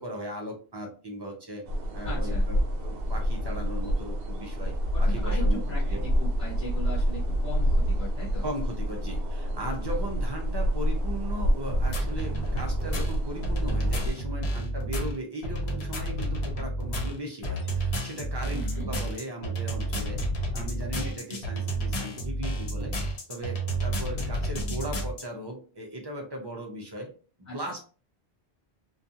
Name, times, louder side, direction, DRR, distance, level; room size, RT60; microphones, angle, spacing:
voice 1, 0.0-1.6 1.9-6.0 8.4-20.3 20.5-23.0 23.3-27.1 27.4-27.9, right 1 dB, 45° right, 1 dB, 0.3 m, -38 dB
sound 1, 1.7-14.1, equal, 65° right, 0.8 m, -28 dB
voice 2, 2.0-2.5 4.9-8.5 18.5-19.0 27.5-27.6, equal, 45° left, -7 dB, 0.9 m, -39 dB
sound 2, 11.7-25.2, right 1 dB, 75° left, 0.9 m, -31 dB
2.4 x 2.2 x 2.7 m, 0.38 s
omnidirectional pair, 1.1 m